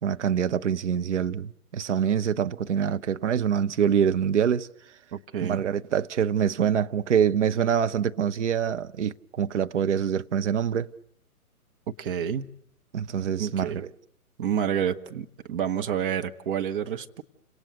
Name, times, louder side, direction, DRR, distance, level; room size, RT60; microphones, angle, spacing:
voice 1, 0.0-4.7 5.4-10.9 12.9-13.9, right 8 dB, 50° right, 1.1 m, -25 dB
voice 2, 5.1-5.6 12.0-12.5 13.4-13.9 14.4-17.2, right 8 dB, 35° right, 1.5 m, -29 dB
29.5 x 26.5 x 6.7 m
figure-of-eight pair, 125°, 44 cm